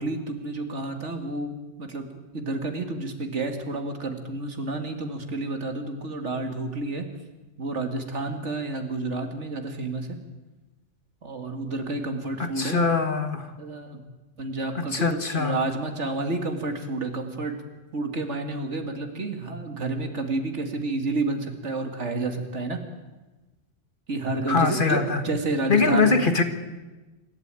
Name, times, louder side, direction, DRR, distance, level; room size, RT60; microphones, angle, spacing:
voice 1, 0.0-7.1 7.6-10.2 11.2-12.8 13.6-14.0 14.4-17.5 17.9-22.8 24.1-26.2, right 2 dB, 70° right, 5 dB, 2.4 m, -30 dB
voice 2, 12.4-13.5 14.7-15.6 24.5-25.2 25.7-26.4, left 4 dB, 45° left, 8 dB, 1.7 m, -22 dB
26.0 x 12.5 x 9.0 m, 1.2 s
omnidirectional pair, 1.2 m